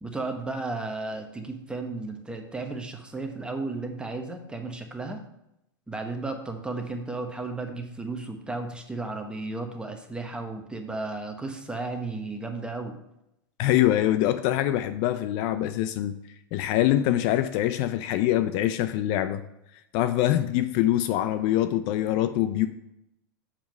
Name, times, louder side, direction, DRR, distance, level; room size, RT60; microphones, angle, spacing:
voice 1, 0.0-5.2 5.9-13.0, right 3 dB, 10° right, 5 dB, 1.1 m, -34 dB
voice 2, 13.6-16.2 16.5-19.4 19.9-22.7, left 13 dB, 50° left, 11 dB, 0.4 m, -24 dB
7.4 x 4.7 x 5.2 m, 0.83 s
hypercardioid pair, 110°, 12 cm